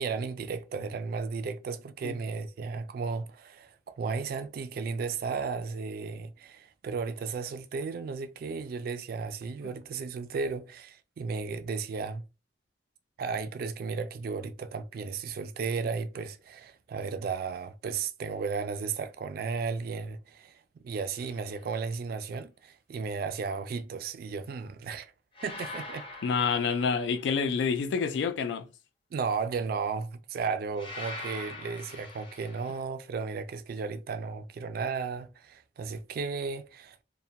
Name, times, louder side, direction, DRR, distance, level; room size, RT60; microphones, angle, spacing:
voice 1, 0.0-12.2 13.2-25.1 25.4-26.0 29.1-37.0, right 5 dB, 55° right, 0.3 m, -34 dB
sound 1, 21.2-21.5 25.3-27.5 30.8-32.8, left 2 dB, 30° left, 0.5 m, -43 dB
voice 2, 26.2-28.7, left 5 dB, 75° left, 0.3 m, -28 dB
2.2 x 2.1 x 2.7 m
head